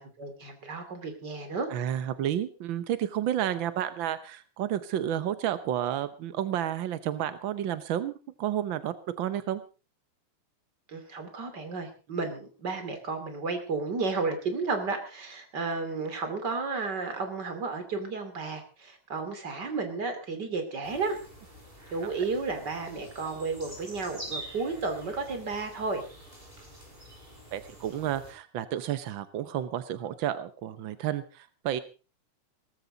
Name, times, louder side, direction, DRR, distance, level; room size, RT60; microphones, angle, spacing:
voice 1, 0.0-1.7 10.9-21.2 21.9-26.0, right 4 dB, 35° right, 7 dB, 3.1 m, -33 dB
voice 2, 1.7-8.1 8.4-9.6 27.5-31.8, right 11 dB, 75° right, 13 dB, 1.1 m, -31 dB
sound 1, 20.8-28.3, right 1 dB, 15° right, 6.8 m, -46 dB
18.5 x 14.5 x 4.0 m, 0.33 s
omnidirectional pair, 3.4 m